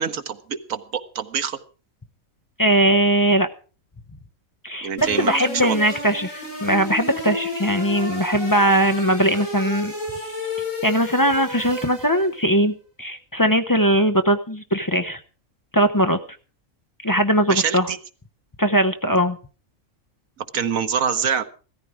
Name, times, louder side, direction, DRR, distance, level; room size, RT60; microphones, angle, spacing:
voice 1, 0.0-1.6 4.8-5.8 17.5-18.0 20.4-21.4, right 7 dB, 90° right, 9 dB, 1.5 m, -25 dB
voice 2, 2.6-3.5 4.6-9.9 10.8-12.7 13.0-15.2 15.7-16.2 17.0-17.9 18.6-19.4, right 1 dB, 20° left, 8 dB, 0.6 m, -20 dB
sound 1, 5.0-12.4, left 2 dB, 75° left, 8.4 m, -32 dB
16.0 x 14.0 x 4.8 m, 0.37 s
omnidirectional pair, 1.4 m